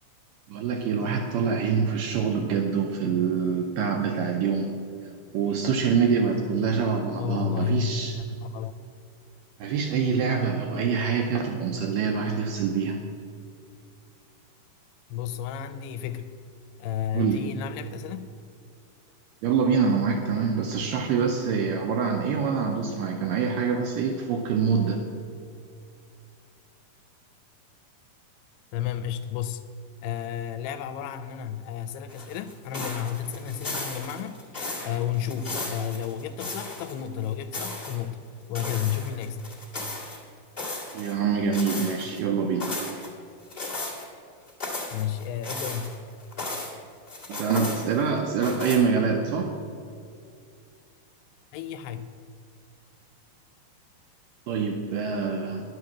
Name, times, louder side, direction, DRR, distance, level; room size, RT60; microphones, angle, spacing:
voice 1, 0.5-4.7 5.3-8.2 9.6-13.0 17.1-17.4 19.4-25.0 40.9-42.7 47.3-49.5 54.5-55.6, right 6 dB, 80° right, 3 dB, 2.0 m, -25 dB
voice 2, 7.2-8.7 15.1-16.3 16.8-18.3 28.7-29.6 30.0-34.4 34.8-38.2 38.5-39.4 44.9-46.0 51.5-52.1, left 9 dB, 85° left, 10 dB, 2.5 m, -32 dB
sound 1, 32.1-37.0 37.3-38.0 38.5-40.2 40.6-41.2 41.5-42.2 42.6-43.1 43.5-44.1 44.5-46.8 47.1-48.1 48.4-48.8, left 2 dB, 30° left, 1.0 m, -35 dB
10.5 x 7.8 x 7.2 m, 2.4 s
omnidirectional pair, 4.6 m